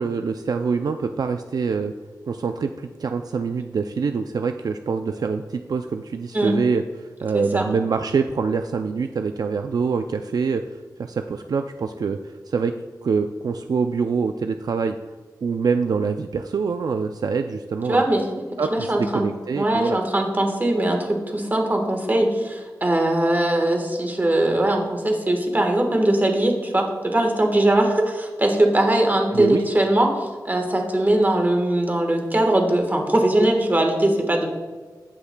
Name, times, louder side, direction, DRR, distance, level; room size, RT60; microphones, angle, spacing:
voice 1, 0.0-1.9 2.3-12.8 13.0-15.0 15.4-18.0 18.6-20.0 29.3-29.7, right 5 dB, 60° right, 7 dB, 0.3 m, -25 dB
voice 2, 7.3-7.6 17.9-18.3 18.7-19.3 19.6-34.5, right 1 dB, 25° right, 3 dB, 1.3 m, -21 dB
15.5 x 5.7 x 2.2 m, 1.4 s
wide cardioid pair, 110°, 7 cm